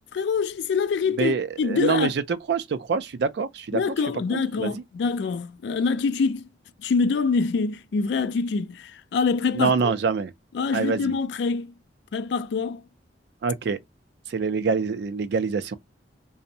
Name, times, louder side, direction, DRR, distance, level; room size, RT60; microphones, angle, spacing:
voice 1, 0.1-2.1 3.7-6.4 6.8-9.9 10.5-11.7 12.1-12.8, left 5 dB, 70° left, 0.3 m, -25 dB
voice 2, 1.2-3.8 4.3-4.7 9.5-10.3 10.7-11.1 13.4-13.8 14.3-15.8, right 5 dB, 65° right, 0.3 m, -25 dB
2.6 x 2.0 x 2.6 m
head